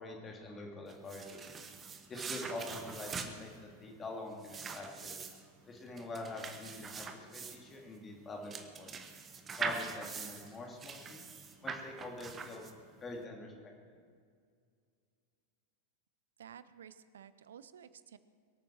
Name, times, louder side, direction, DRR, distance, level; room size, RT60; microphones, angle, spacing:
voice 1, 0.0-1.4 2.1-5.2 5.7-8.5 8.8-8.9 9.6-11.2 11.6-12.6 13.0-13.5 13.9-14.0, left 2 dB, 20° left, 0 dB, 2.9 m, -45 dB
sound 1, 0.9-13.0, right 5 dB, 20° right, 1.3 m, -43 dB
voice 2, 16.4-18.2, right 8 dB, 65° right, 15 dB, 0.7 m, -53 dB
23.5 x 9.0 x 6.3 m, 2.2 s
figure-of-eight pair, 90°, 0 cm